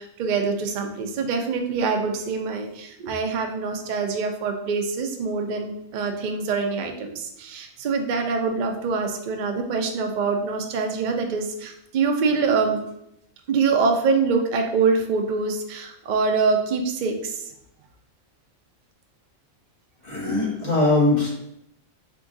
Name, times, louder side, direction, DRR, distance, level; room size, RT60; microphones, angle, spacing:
voice 1, 0.0-12.8 13.5-17.4, right 4 dB, 80° right, 3 dB, 0.4 m, -24 dB
voice 2, 20.0-21.3, left 2 dB, 35° left, -6 dB, 1.4 m, -21 dB
3.8 x 2.6 x 3.7 m, 0.78 s
omnidirectional pair, 1.5 m